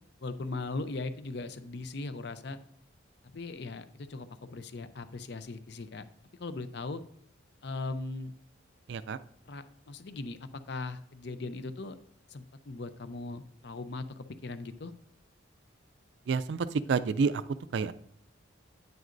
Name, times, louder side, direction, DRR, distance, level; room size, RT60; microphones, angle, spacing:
voice 1, 0.2-2.6 3.3-6.0 6.4-7.0 7.6-8.3 9.5-12.0 12.3-14.9, left 3 dB, 60° left, 11 dB, 0.6 m, -39 dB
voice 2, 8.9-9.2 16.3-17.4 17.7-17.9, right 5 dB, 60° right, 15 dB, 0.4 m, -29 dB
9.3 x 9.1 x 2.6 m, 0.66 s
head